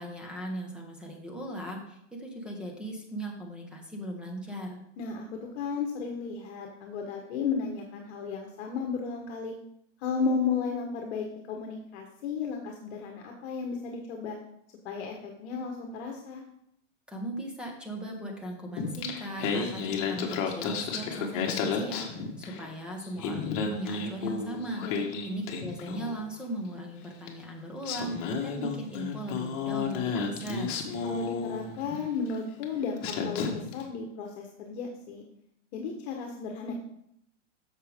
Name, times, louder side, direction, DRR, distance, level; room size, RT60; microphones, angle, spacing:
voice 1, 0.0-4.8 17.1-24.8 25.2-30.8, right 1 dB, ahead, 0 dB, 1.3 m, -38 dB
voice 2, 5.0-9.5 10.0-14.4 14.8-16.4 24.8-25.1 31.0-35.2 35.7-36.7, left 5 dB, 55° left, 2 dB, 1.3 m, -34 dB
Singing, 18.8-22.7 23.0-26.3 27.3-27.4 27.8-32.0 32.6-32.7 33.0-33.8, left 5 dB, 40° left, 1.5 m, -32 dB
8.6 x 6.8 x 3.6 m, 0.76 s
supercardioid pair, 150°, 38 cm